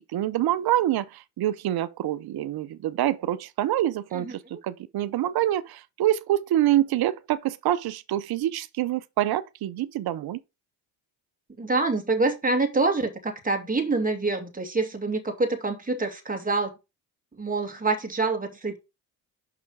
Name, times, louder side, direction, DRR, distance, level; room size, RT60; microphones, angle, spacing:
voice 1, 0.1-10.4, right 13 dB, 50° right, 0.8 m, -26 dB
voice 2, 4.1-4.6 11.6-16.7 17.4-18.8, right 3 dB, 15° right, 2.5 m, -26 dB
6.0 x 5.8 x 4.7 m
supercardioid pair, 65°, 47 cm